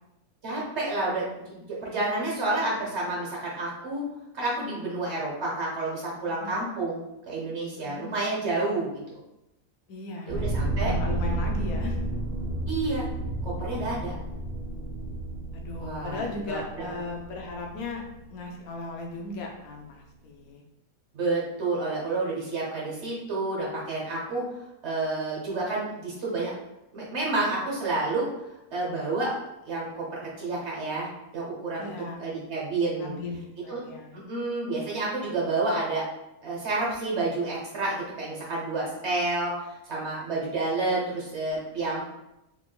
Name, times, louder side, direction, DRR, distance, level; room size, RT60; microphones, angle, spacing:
voice 1, 0.4-4.0 4.3-9.2 10.2-10.9 12.7-13.1 13.4-14.1 15.8-17.2 21.1-24.4 24.8-26.5 26.9-28.3 28.7-29.3 29.6-31.9 32.2-33.1 33.7-33.8 34.3-36.1 36.4-42.0, right 2 dB, 55° right, -4 dB, 1.2 m, -30 dB
voice 2, 9.9-10.5 10.8-12.0 15.5-18.0 18.3-20.6 31.8-32.2 33.0-34.2, left 3 dB, 80° left, 1 dB, 1.1 m, -37 dB
sound 1, 10.3-19.1, right 1 dB, 80° right, 1.2 m, -32 dB
3.5 x 3.1 x 2.2 m, 0.89 s
omnidirectional pair, 1.5 m